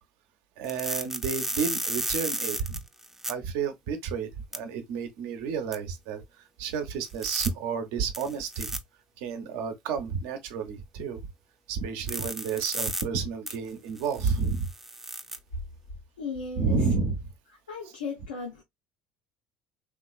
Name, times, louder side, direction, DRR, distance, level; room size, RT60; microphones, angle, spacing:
sound 1, 0.6-3.3 4.5-4.6 5.7-5.8 7.0-7.5 8.1-8.8 12.1-13.0 13.5-13.6 14.0-15.4, right 1 dB, 10° right, 0.5 m, -33 dB
voice 1, 0.6-2.8 3.3-8.8 9.2-11.2 11.7-14.7 16.6-17.2, right 5 dB, 70° right, 0.6 m, -31 dB
voice 2, 16.2-16.8 17.7-18.6, left 5 dB, 85° left, 0.6 m, -35 dB
3.0 x 2.4 x 2.3 m
hypercardioid pair, 65°, 4 cm